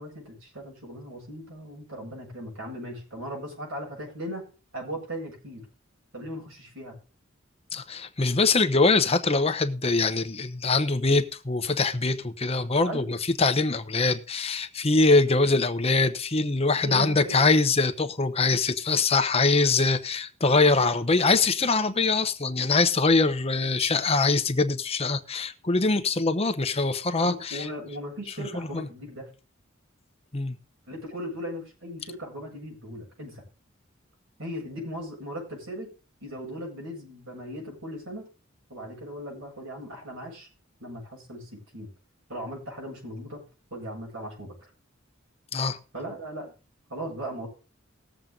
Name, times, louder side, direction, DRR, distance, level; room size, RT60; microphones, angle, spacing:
voice 1, 0.0-4.4 4.7-5.6 6.1-6.9 12.8-13.2 16.8-17.4 27.2-29.3 30.9-33.4 34.4-35.9 36.2-38.3 38.7-40.5 40.8-41.9 42.3-43.4 43.7-44.5 45.9-46.5 46.9-47.5, equal, 80° right, 8.0 m, -38 dB
voice 2, 7.7-27.7 28.7-28.9 30.3-30.6 45.5-45.8, left 3 dB, 30° left, 1.0 m, -23 dB
19.0 x 7.6 x 3.9 m
head